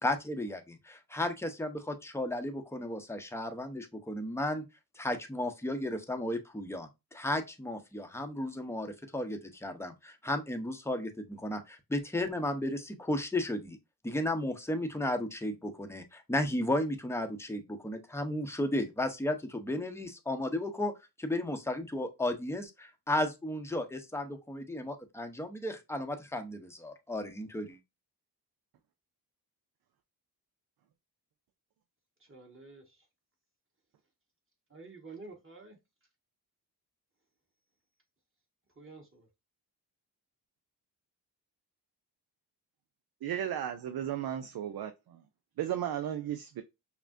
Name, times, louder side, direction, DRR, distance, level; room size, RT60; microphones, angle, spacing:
voice 1, 0.0-4.6 5.0-13.8 14.0-27.8, left 1 dB, 5° left, 0.8 m, -34 dB
voice 2, 32.2-33.0 34.7-35.8 38.7-39.3, right 3 dB, 30° right, 1.5 m, -50 dB
voice 3, 43.2-44.9 45.6-46.6, right 10 dB, 60° right, 0.5 m, -34 dB
5.7 x 2.2 x 2.6 m
cardioid pair, 75°, 42 cm